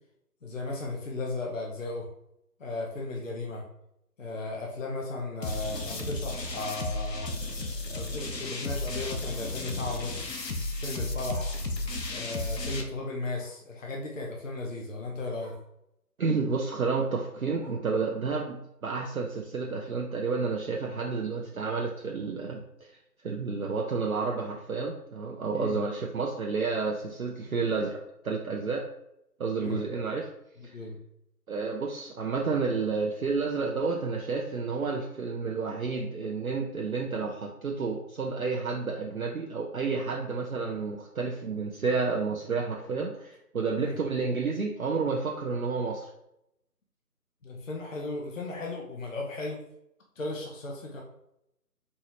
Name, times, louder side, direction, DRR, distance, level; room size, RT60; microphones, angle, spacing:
voice 1, 0.4-2.1 2.6-3.6 4.2-7.3 7.9-10.4 10.8-11.5 12.1-15.6 25.5-25.8 29.6-29.8 30.6-31.0 43.8-44.0 47.4-49.6 50.2-51.0, left 2 dB, 50° left, -1 dB, 0.8 m, -35 dB
sound 1, 5.4-12.8, left 2 dB, 85° left, 0.8 m, -34 dB
Bark, 12.3-12.6 13.3-13.7 14.8-14.9 15.4-15.7 16.4-16.8 17.6-17.9 18.8-19.3 20.3-20.4, right 1 dB, 25° right, 0.9 m, -53 dB
voice 2, 16.2-22.9 23.2-28.0 28.2-28.9 29.4-30.3 31.5-46.1, right 4 dB, 60° right, 0 dB, 0.6 m, -30 dB
4.5 x 3.1 x 2.9 m, 0.79 s
figure-of-eight pair, 155°, 48 cm